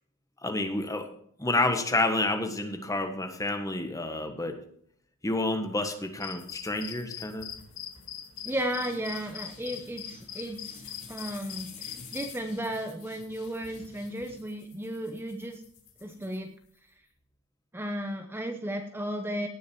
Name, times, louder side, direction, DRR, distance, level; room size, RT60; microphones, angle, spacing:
voice 1, 0.4-1.1 1.4-4.6 5.2-7.5, left 2 dB, 15° left, 5 dB, 1.5 m, -29 dB
sound 1, 6.2-12.4, left 10 dB, 65° left, 1.8 m, -42 dB
sound 2, 6.4-16.9, left 5 dB, 40° left, 5.0 m, -51 dB
voice 2, 8.5-15.6 16.0-16.5 17.7-19.5, right 1 dB, 10° right, 4 dB, 0.8 m, -34 dB
17.5 x 6.5 x 4.6 m, 0.65 s
head